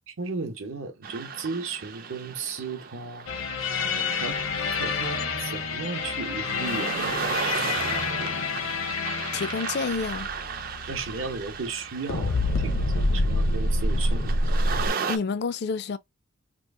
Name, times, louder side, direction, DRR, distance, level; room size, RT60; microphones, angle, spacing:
voice 1, 0.1-3.3 4.2-4.4 4.8-8.3 10.9-14.6, right 4 dB, 70° right, 0.8 m, -35 dB
sound 1, 1.0-15.2, right 6 dB, 45° right, 0.4 m, -35 dB
sound 2, 3.3-11.8 12.1-14.9, left 2 dB, 75° left, 0.7 m, -27 dB
voice 2, 9.3-10.3 15.1-16.0, left 5 dB, 50° left, 0.3 m, -29 dB
2.9 x 2.4 x 3.4 m
head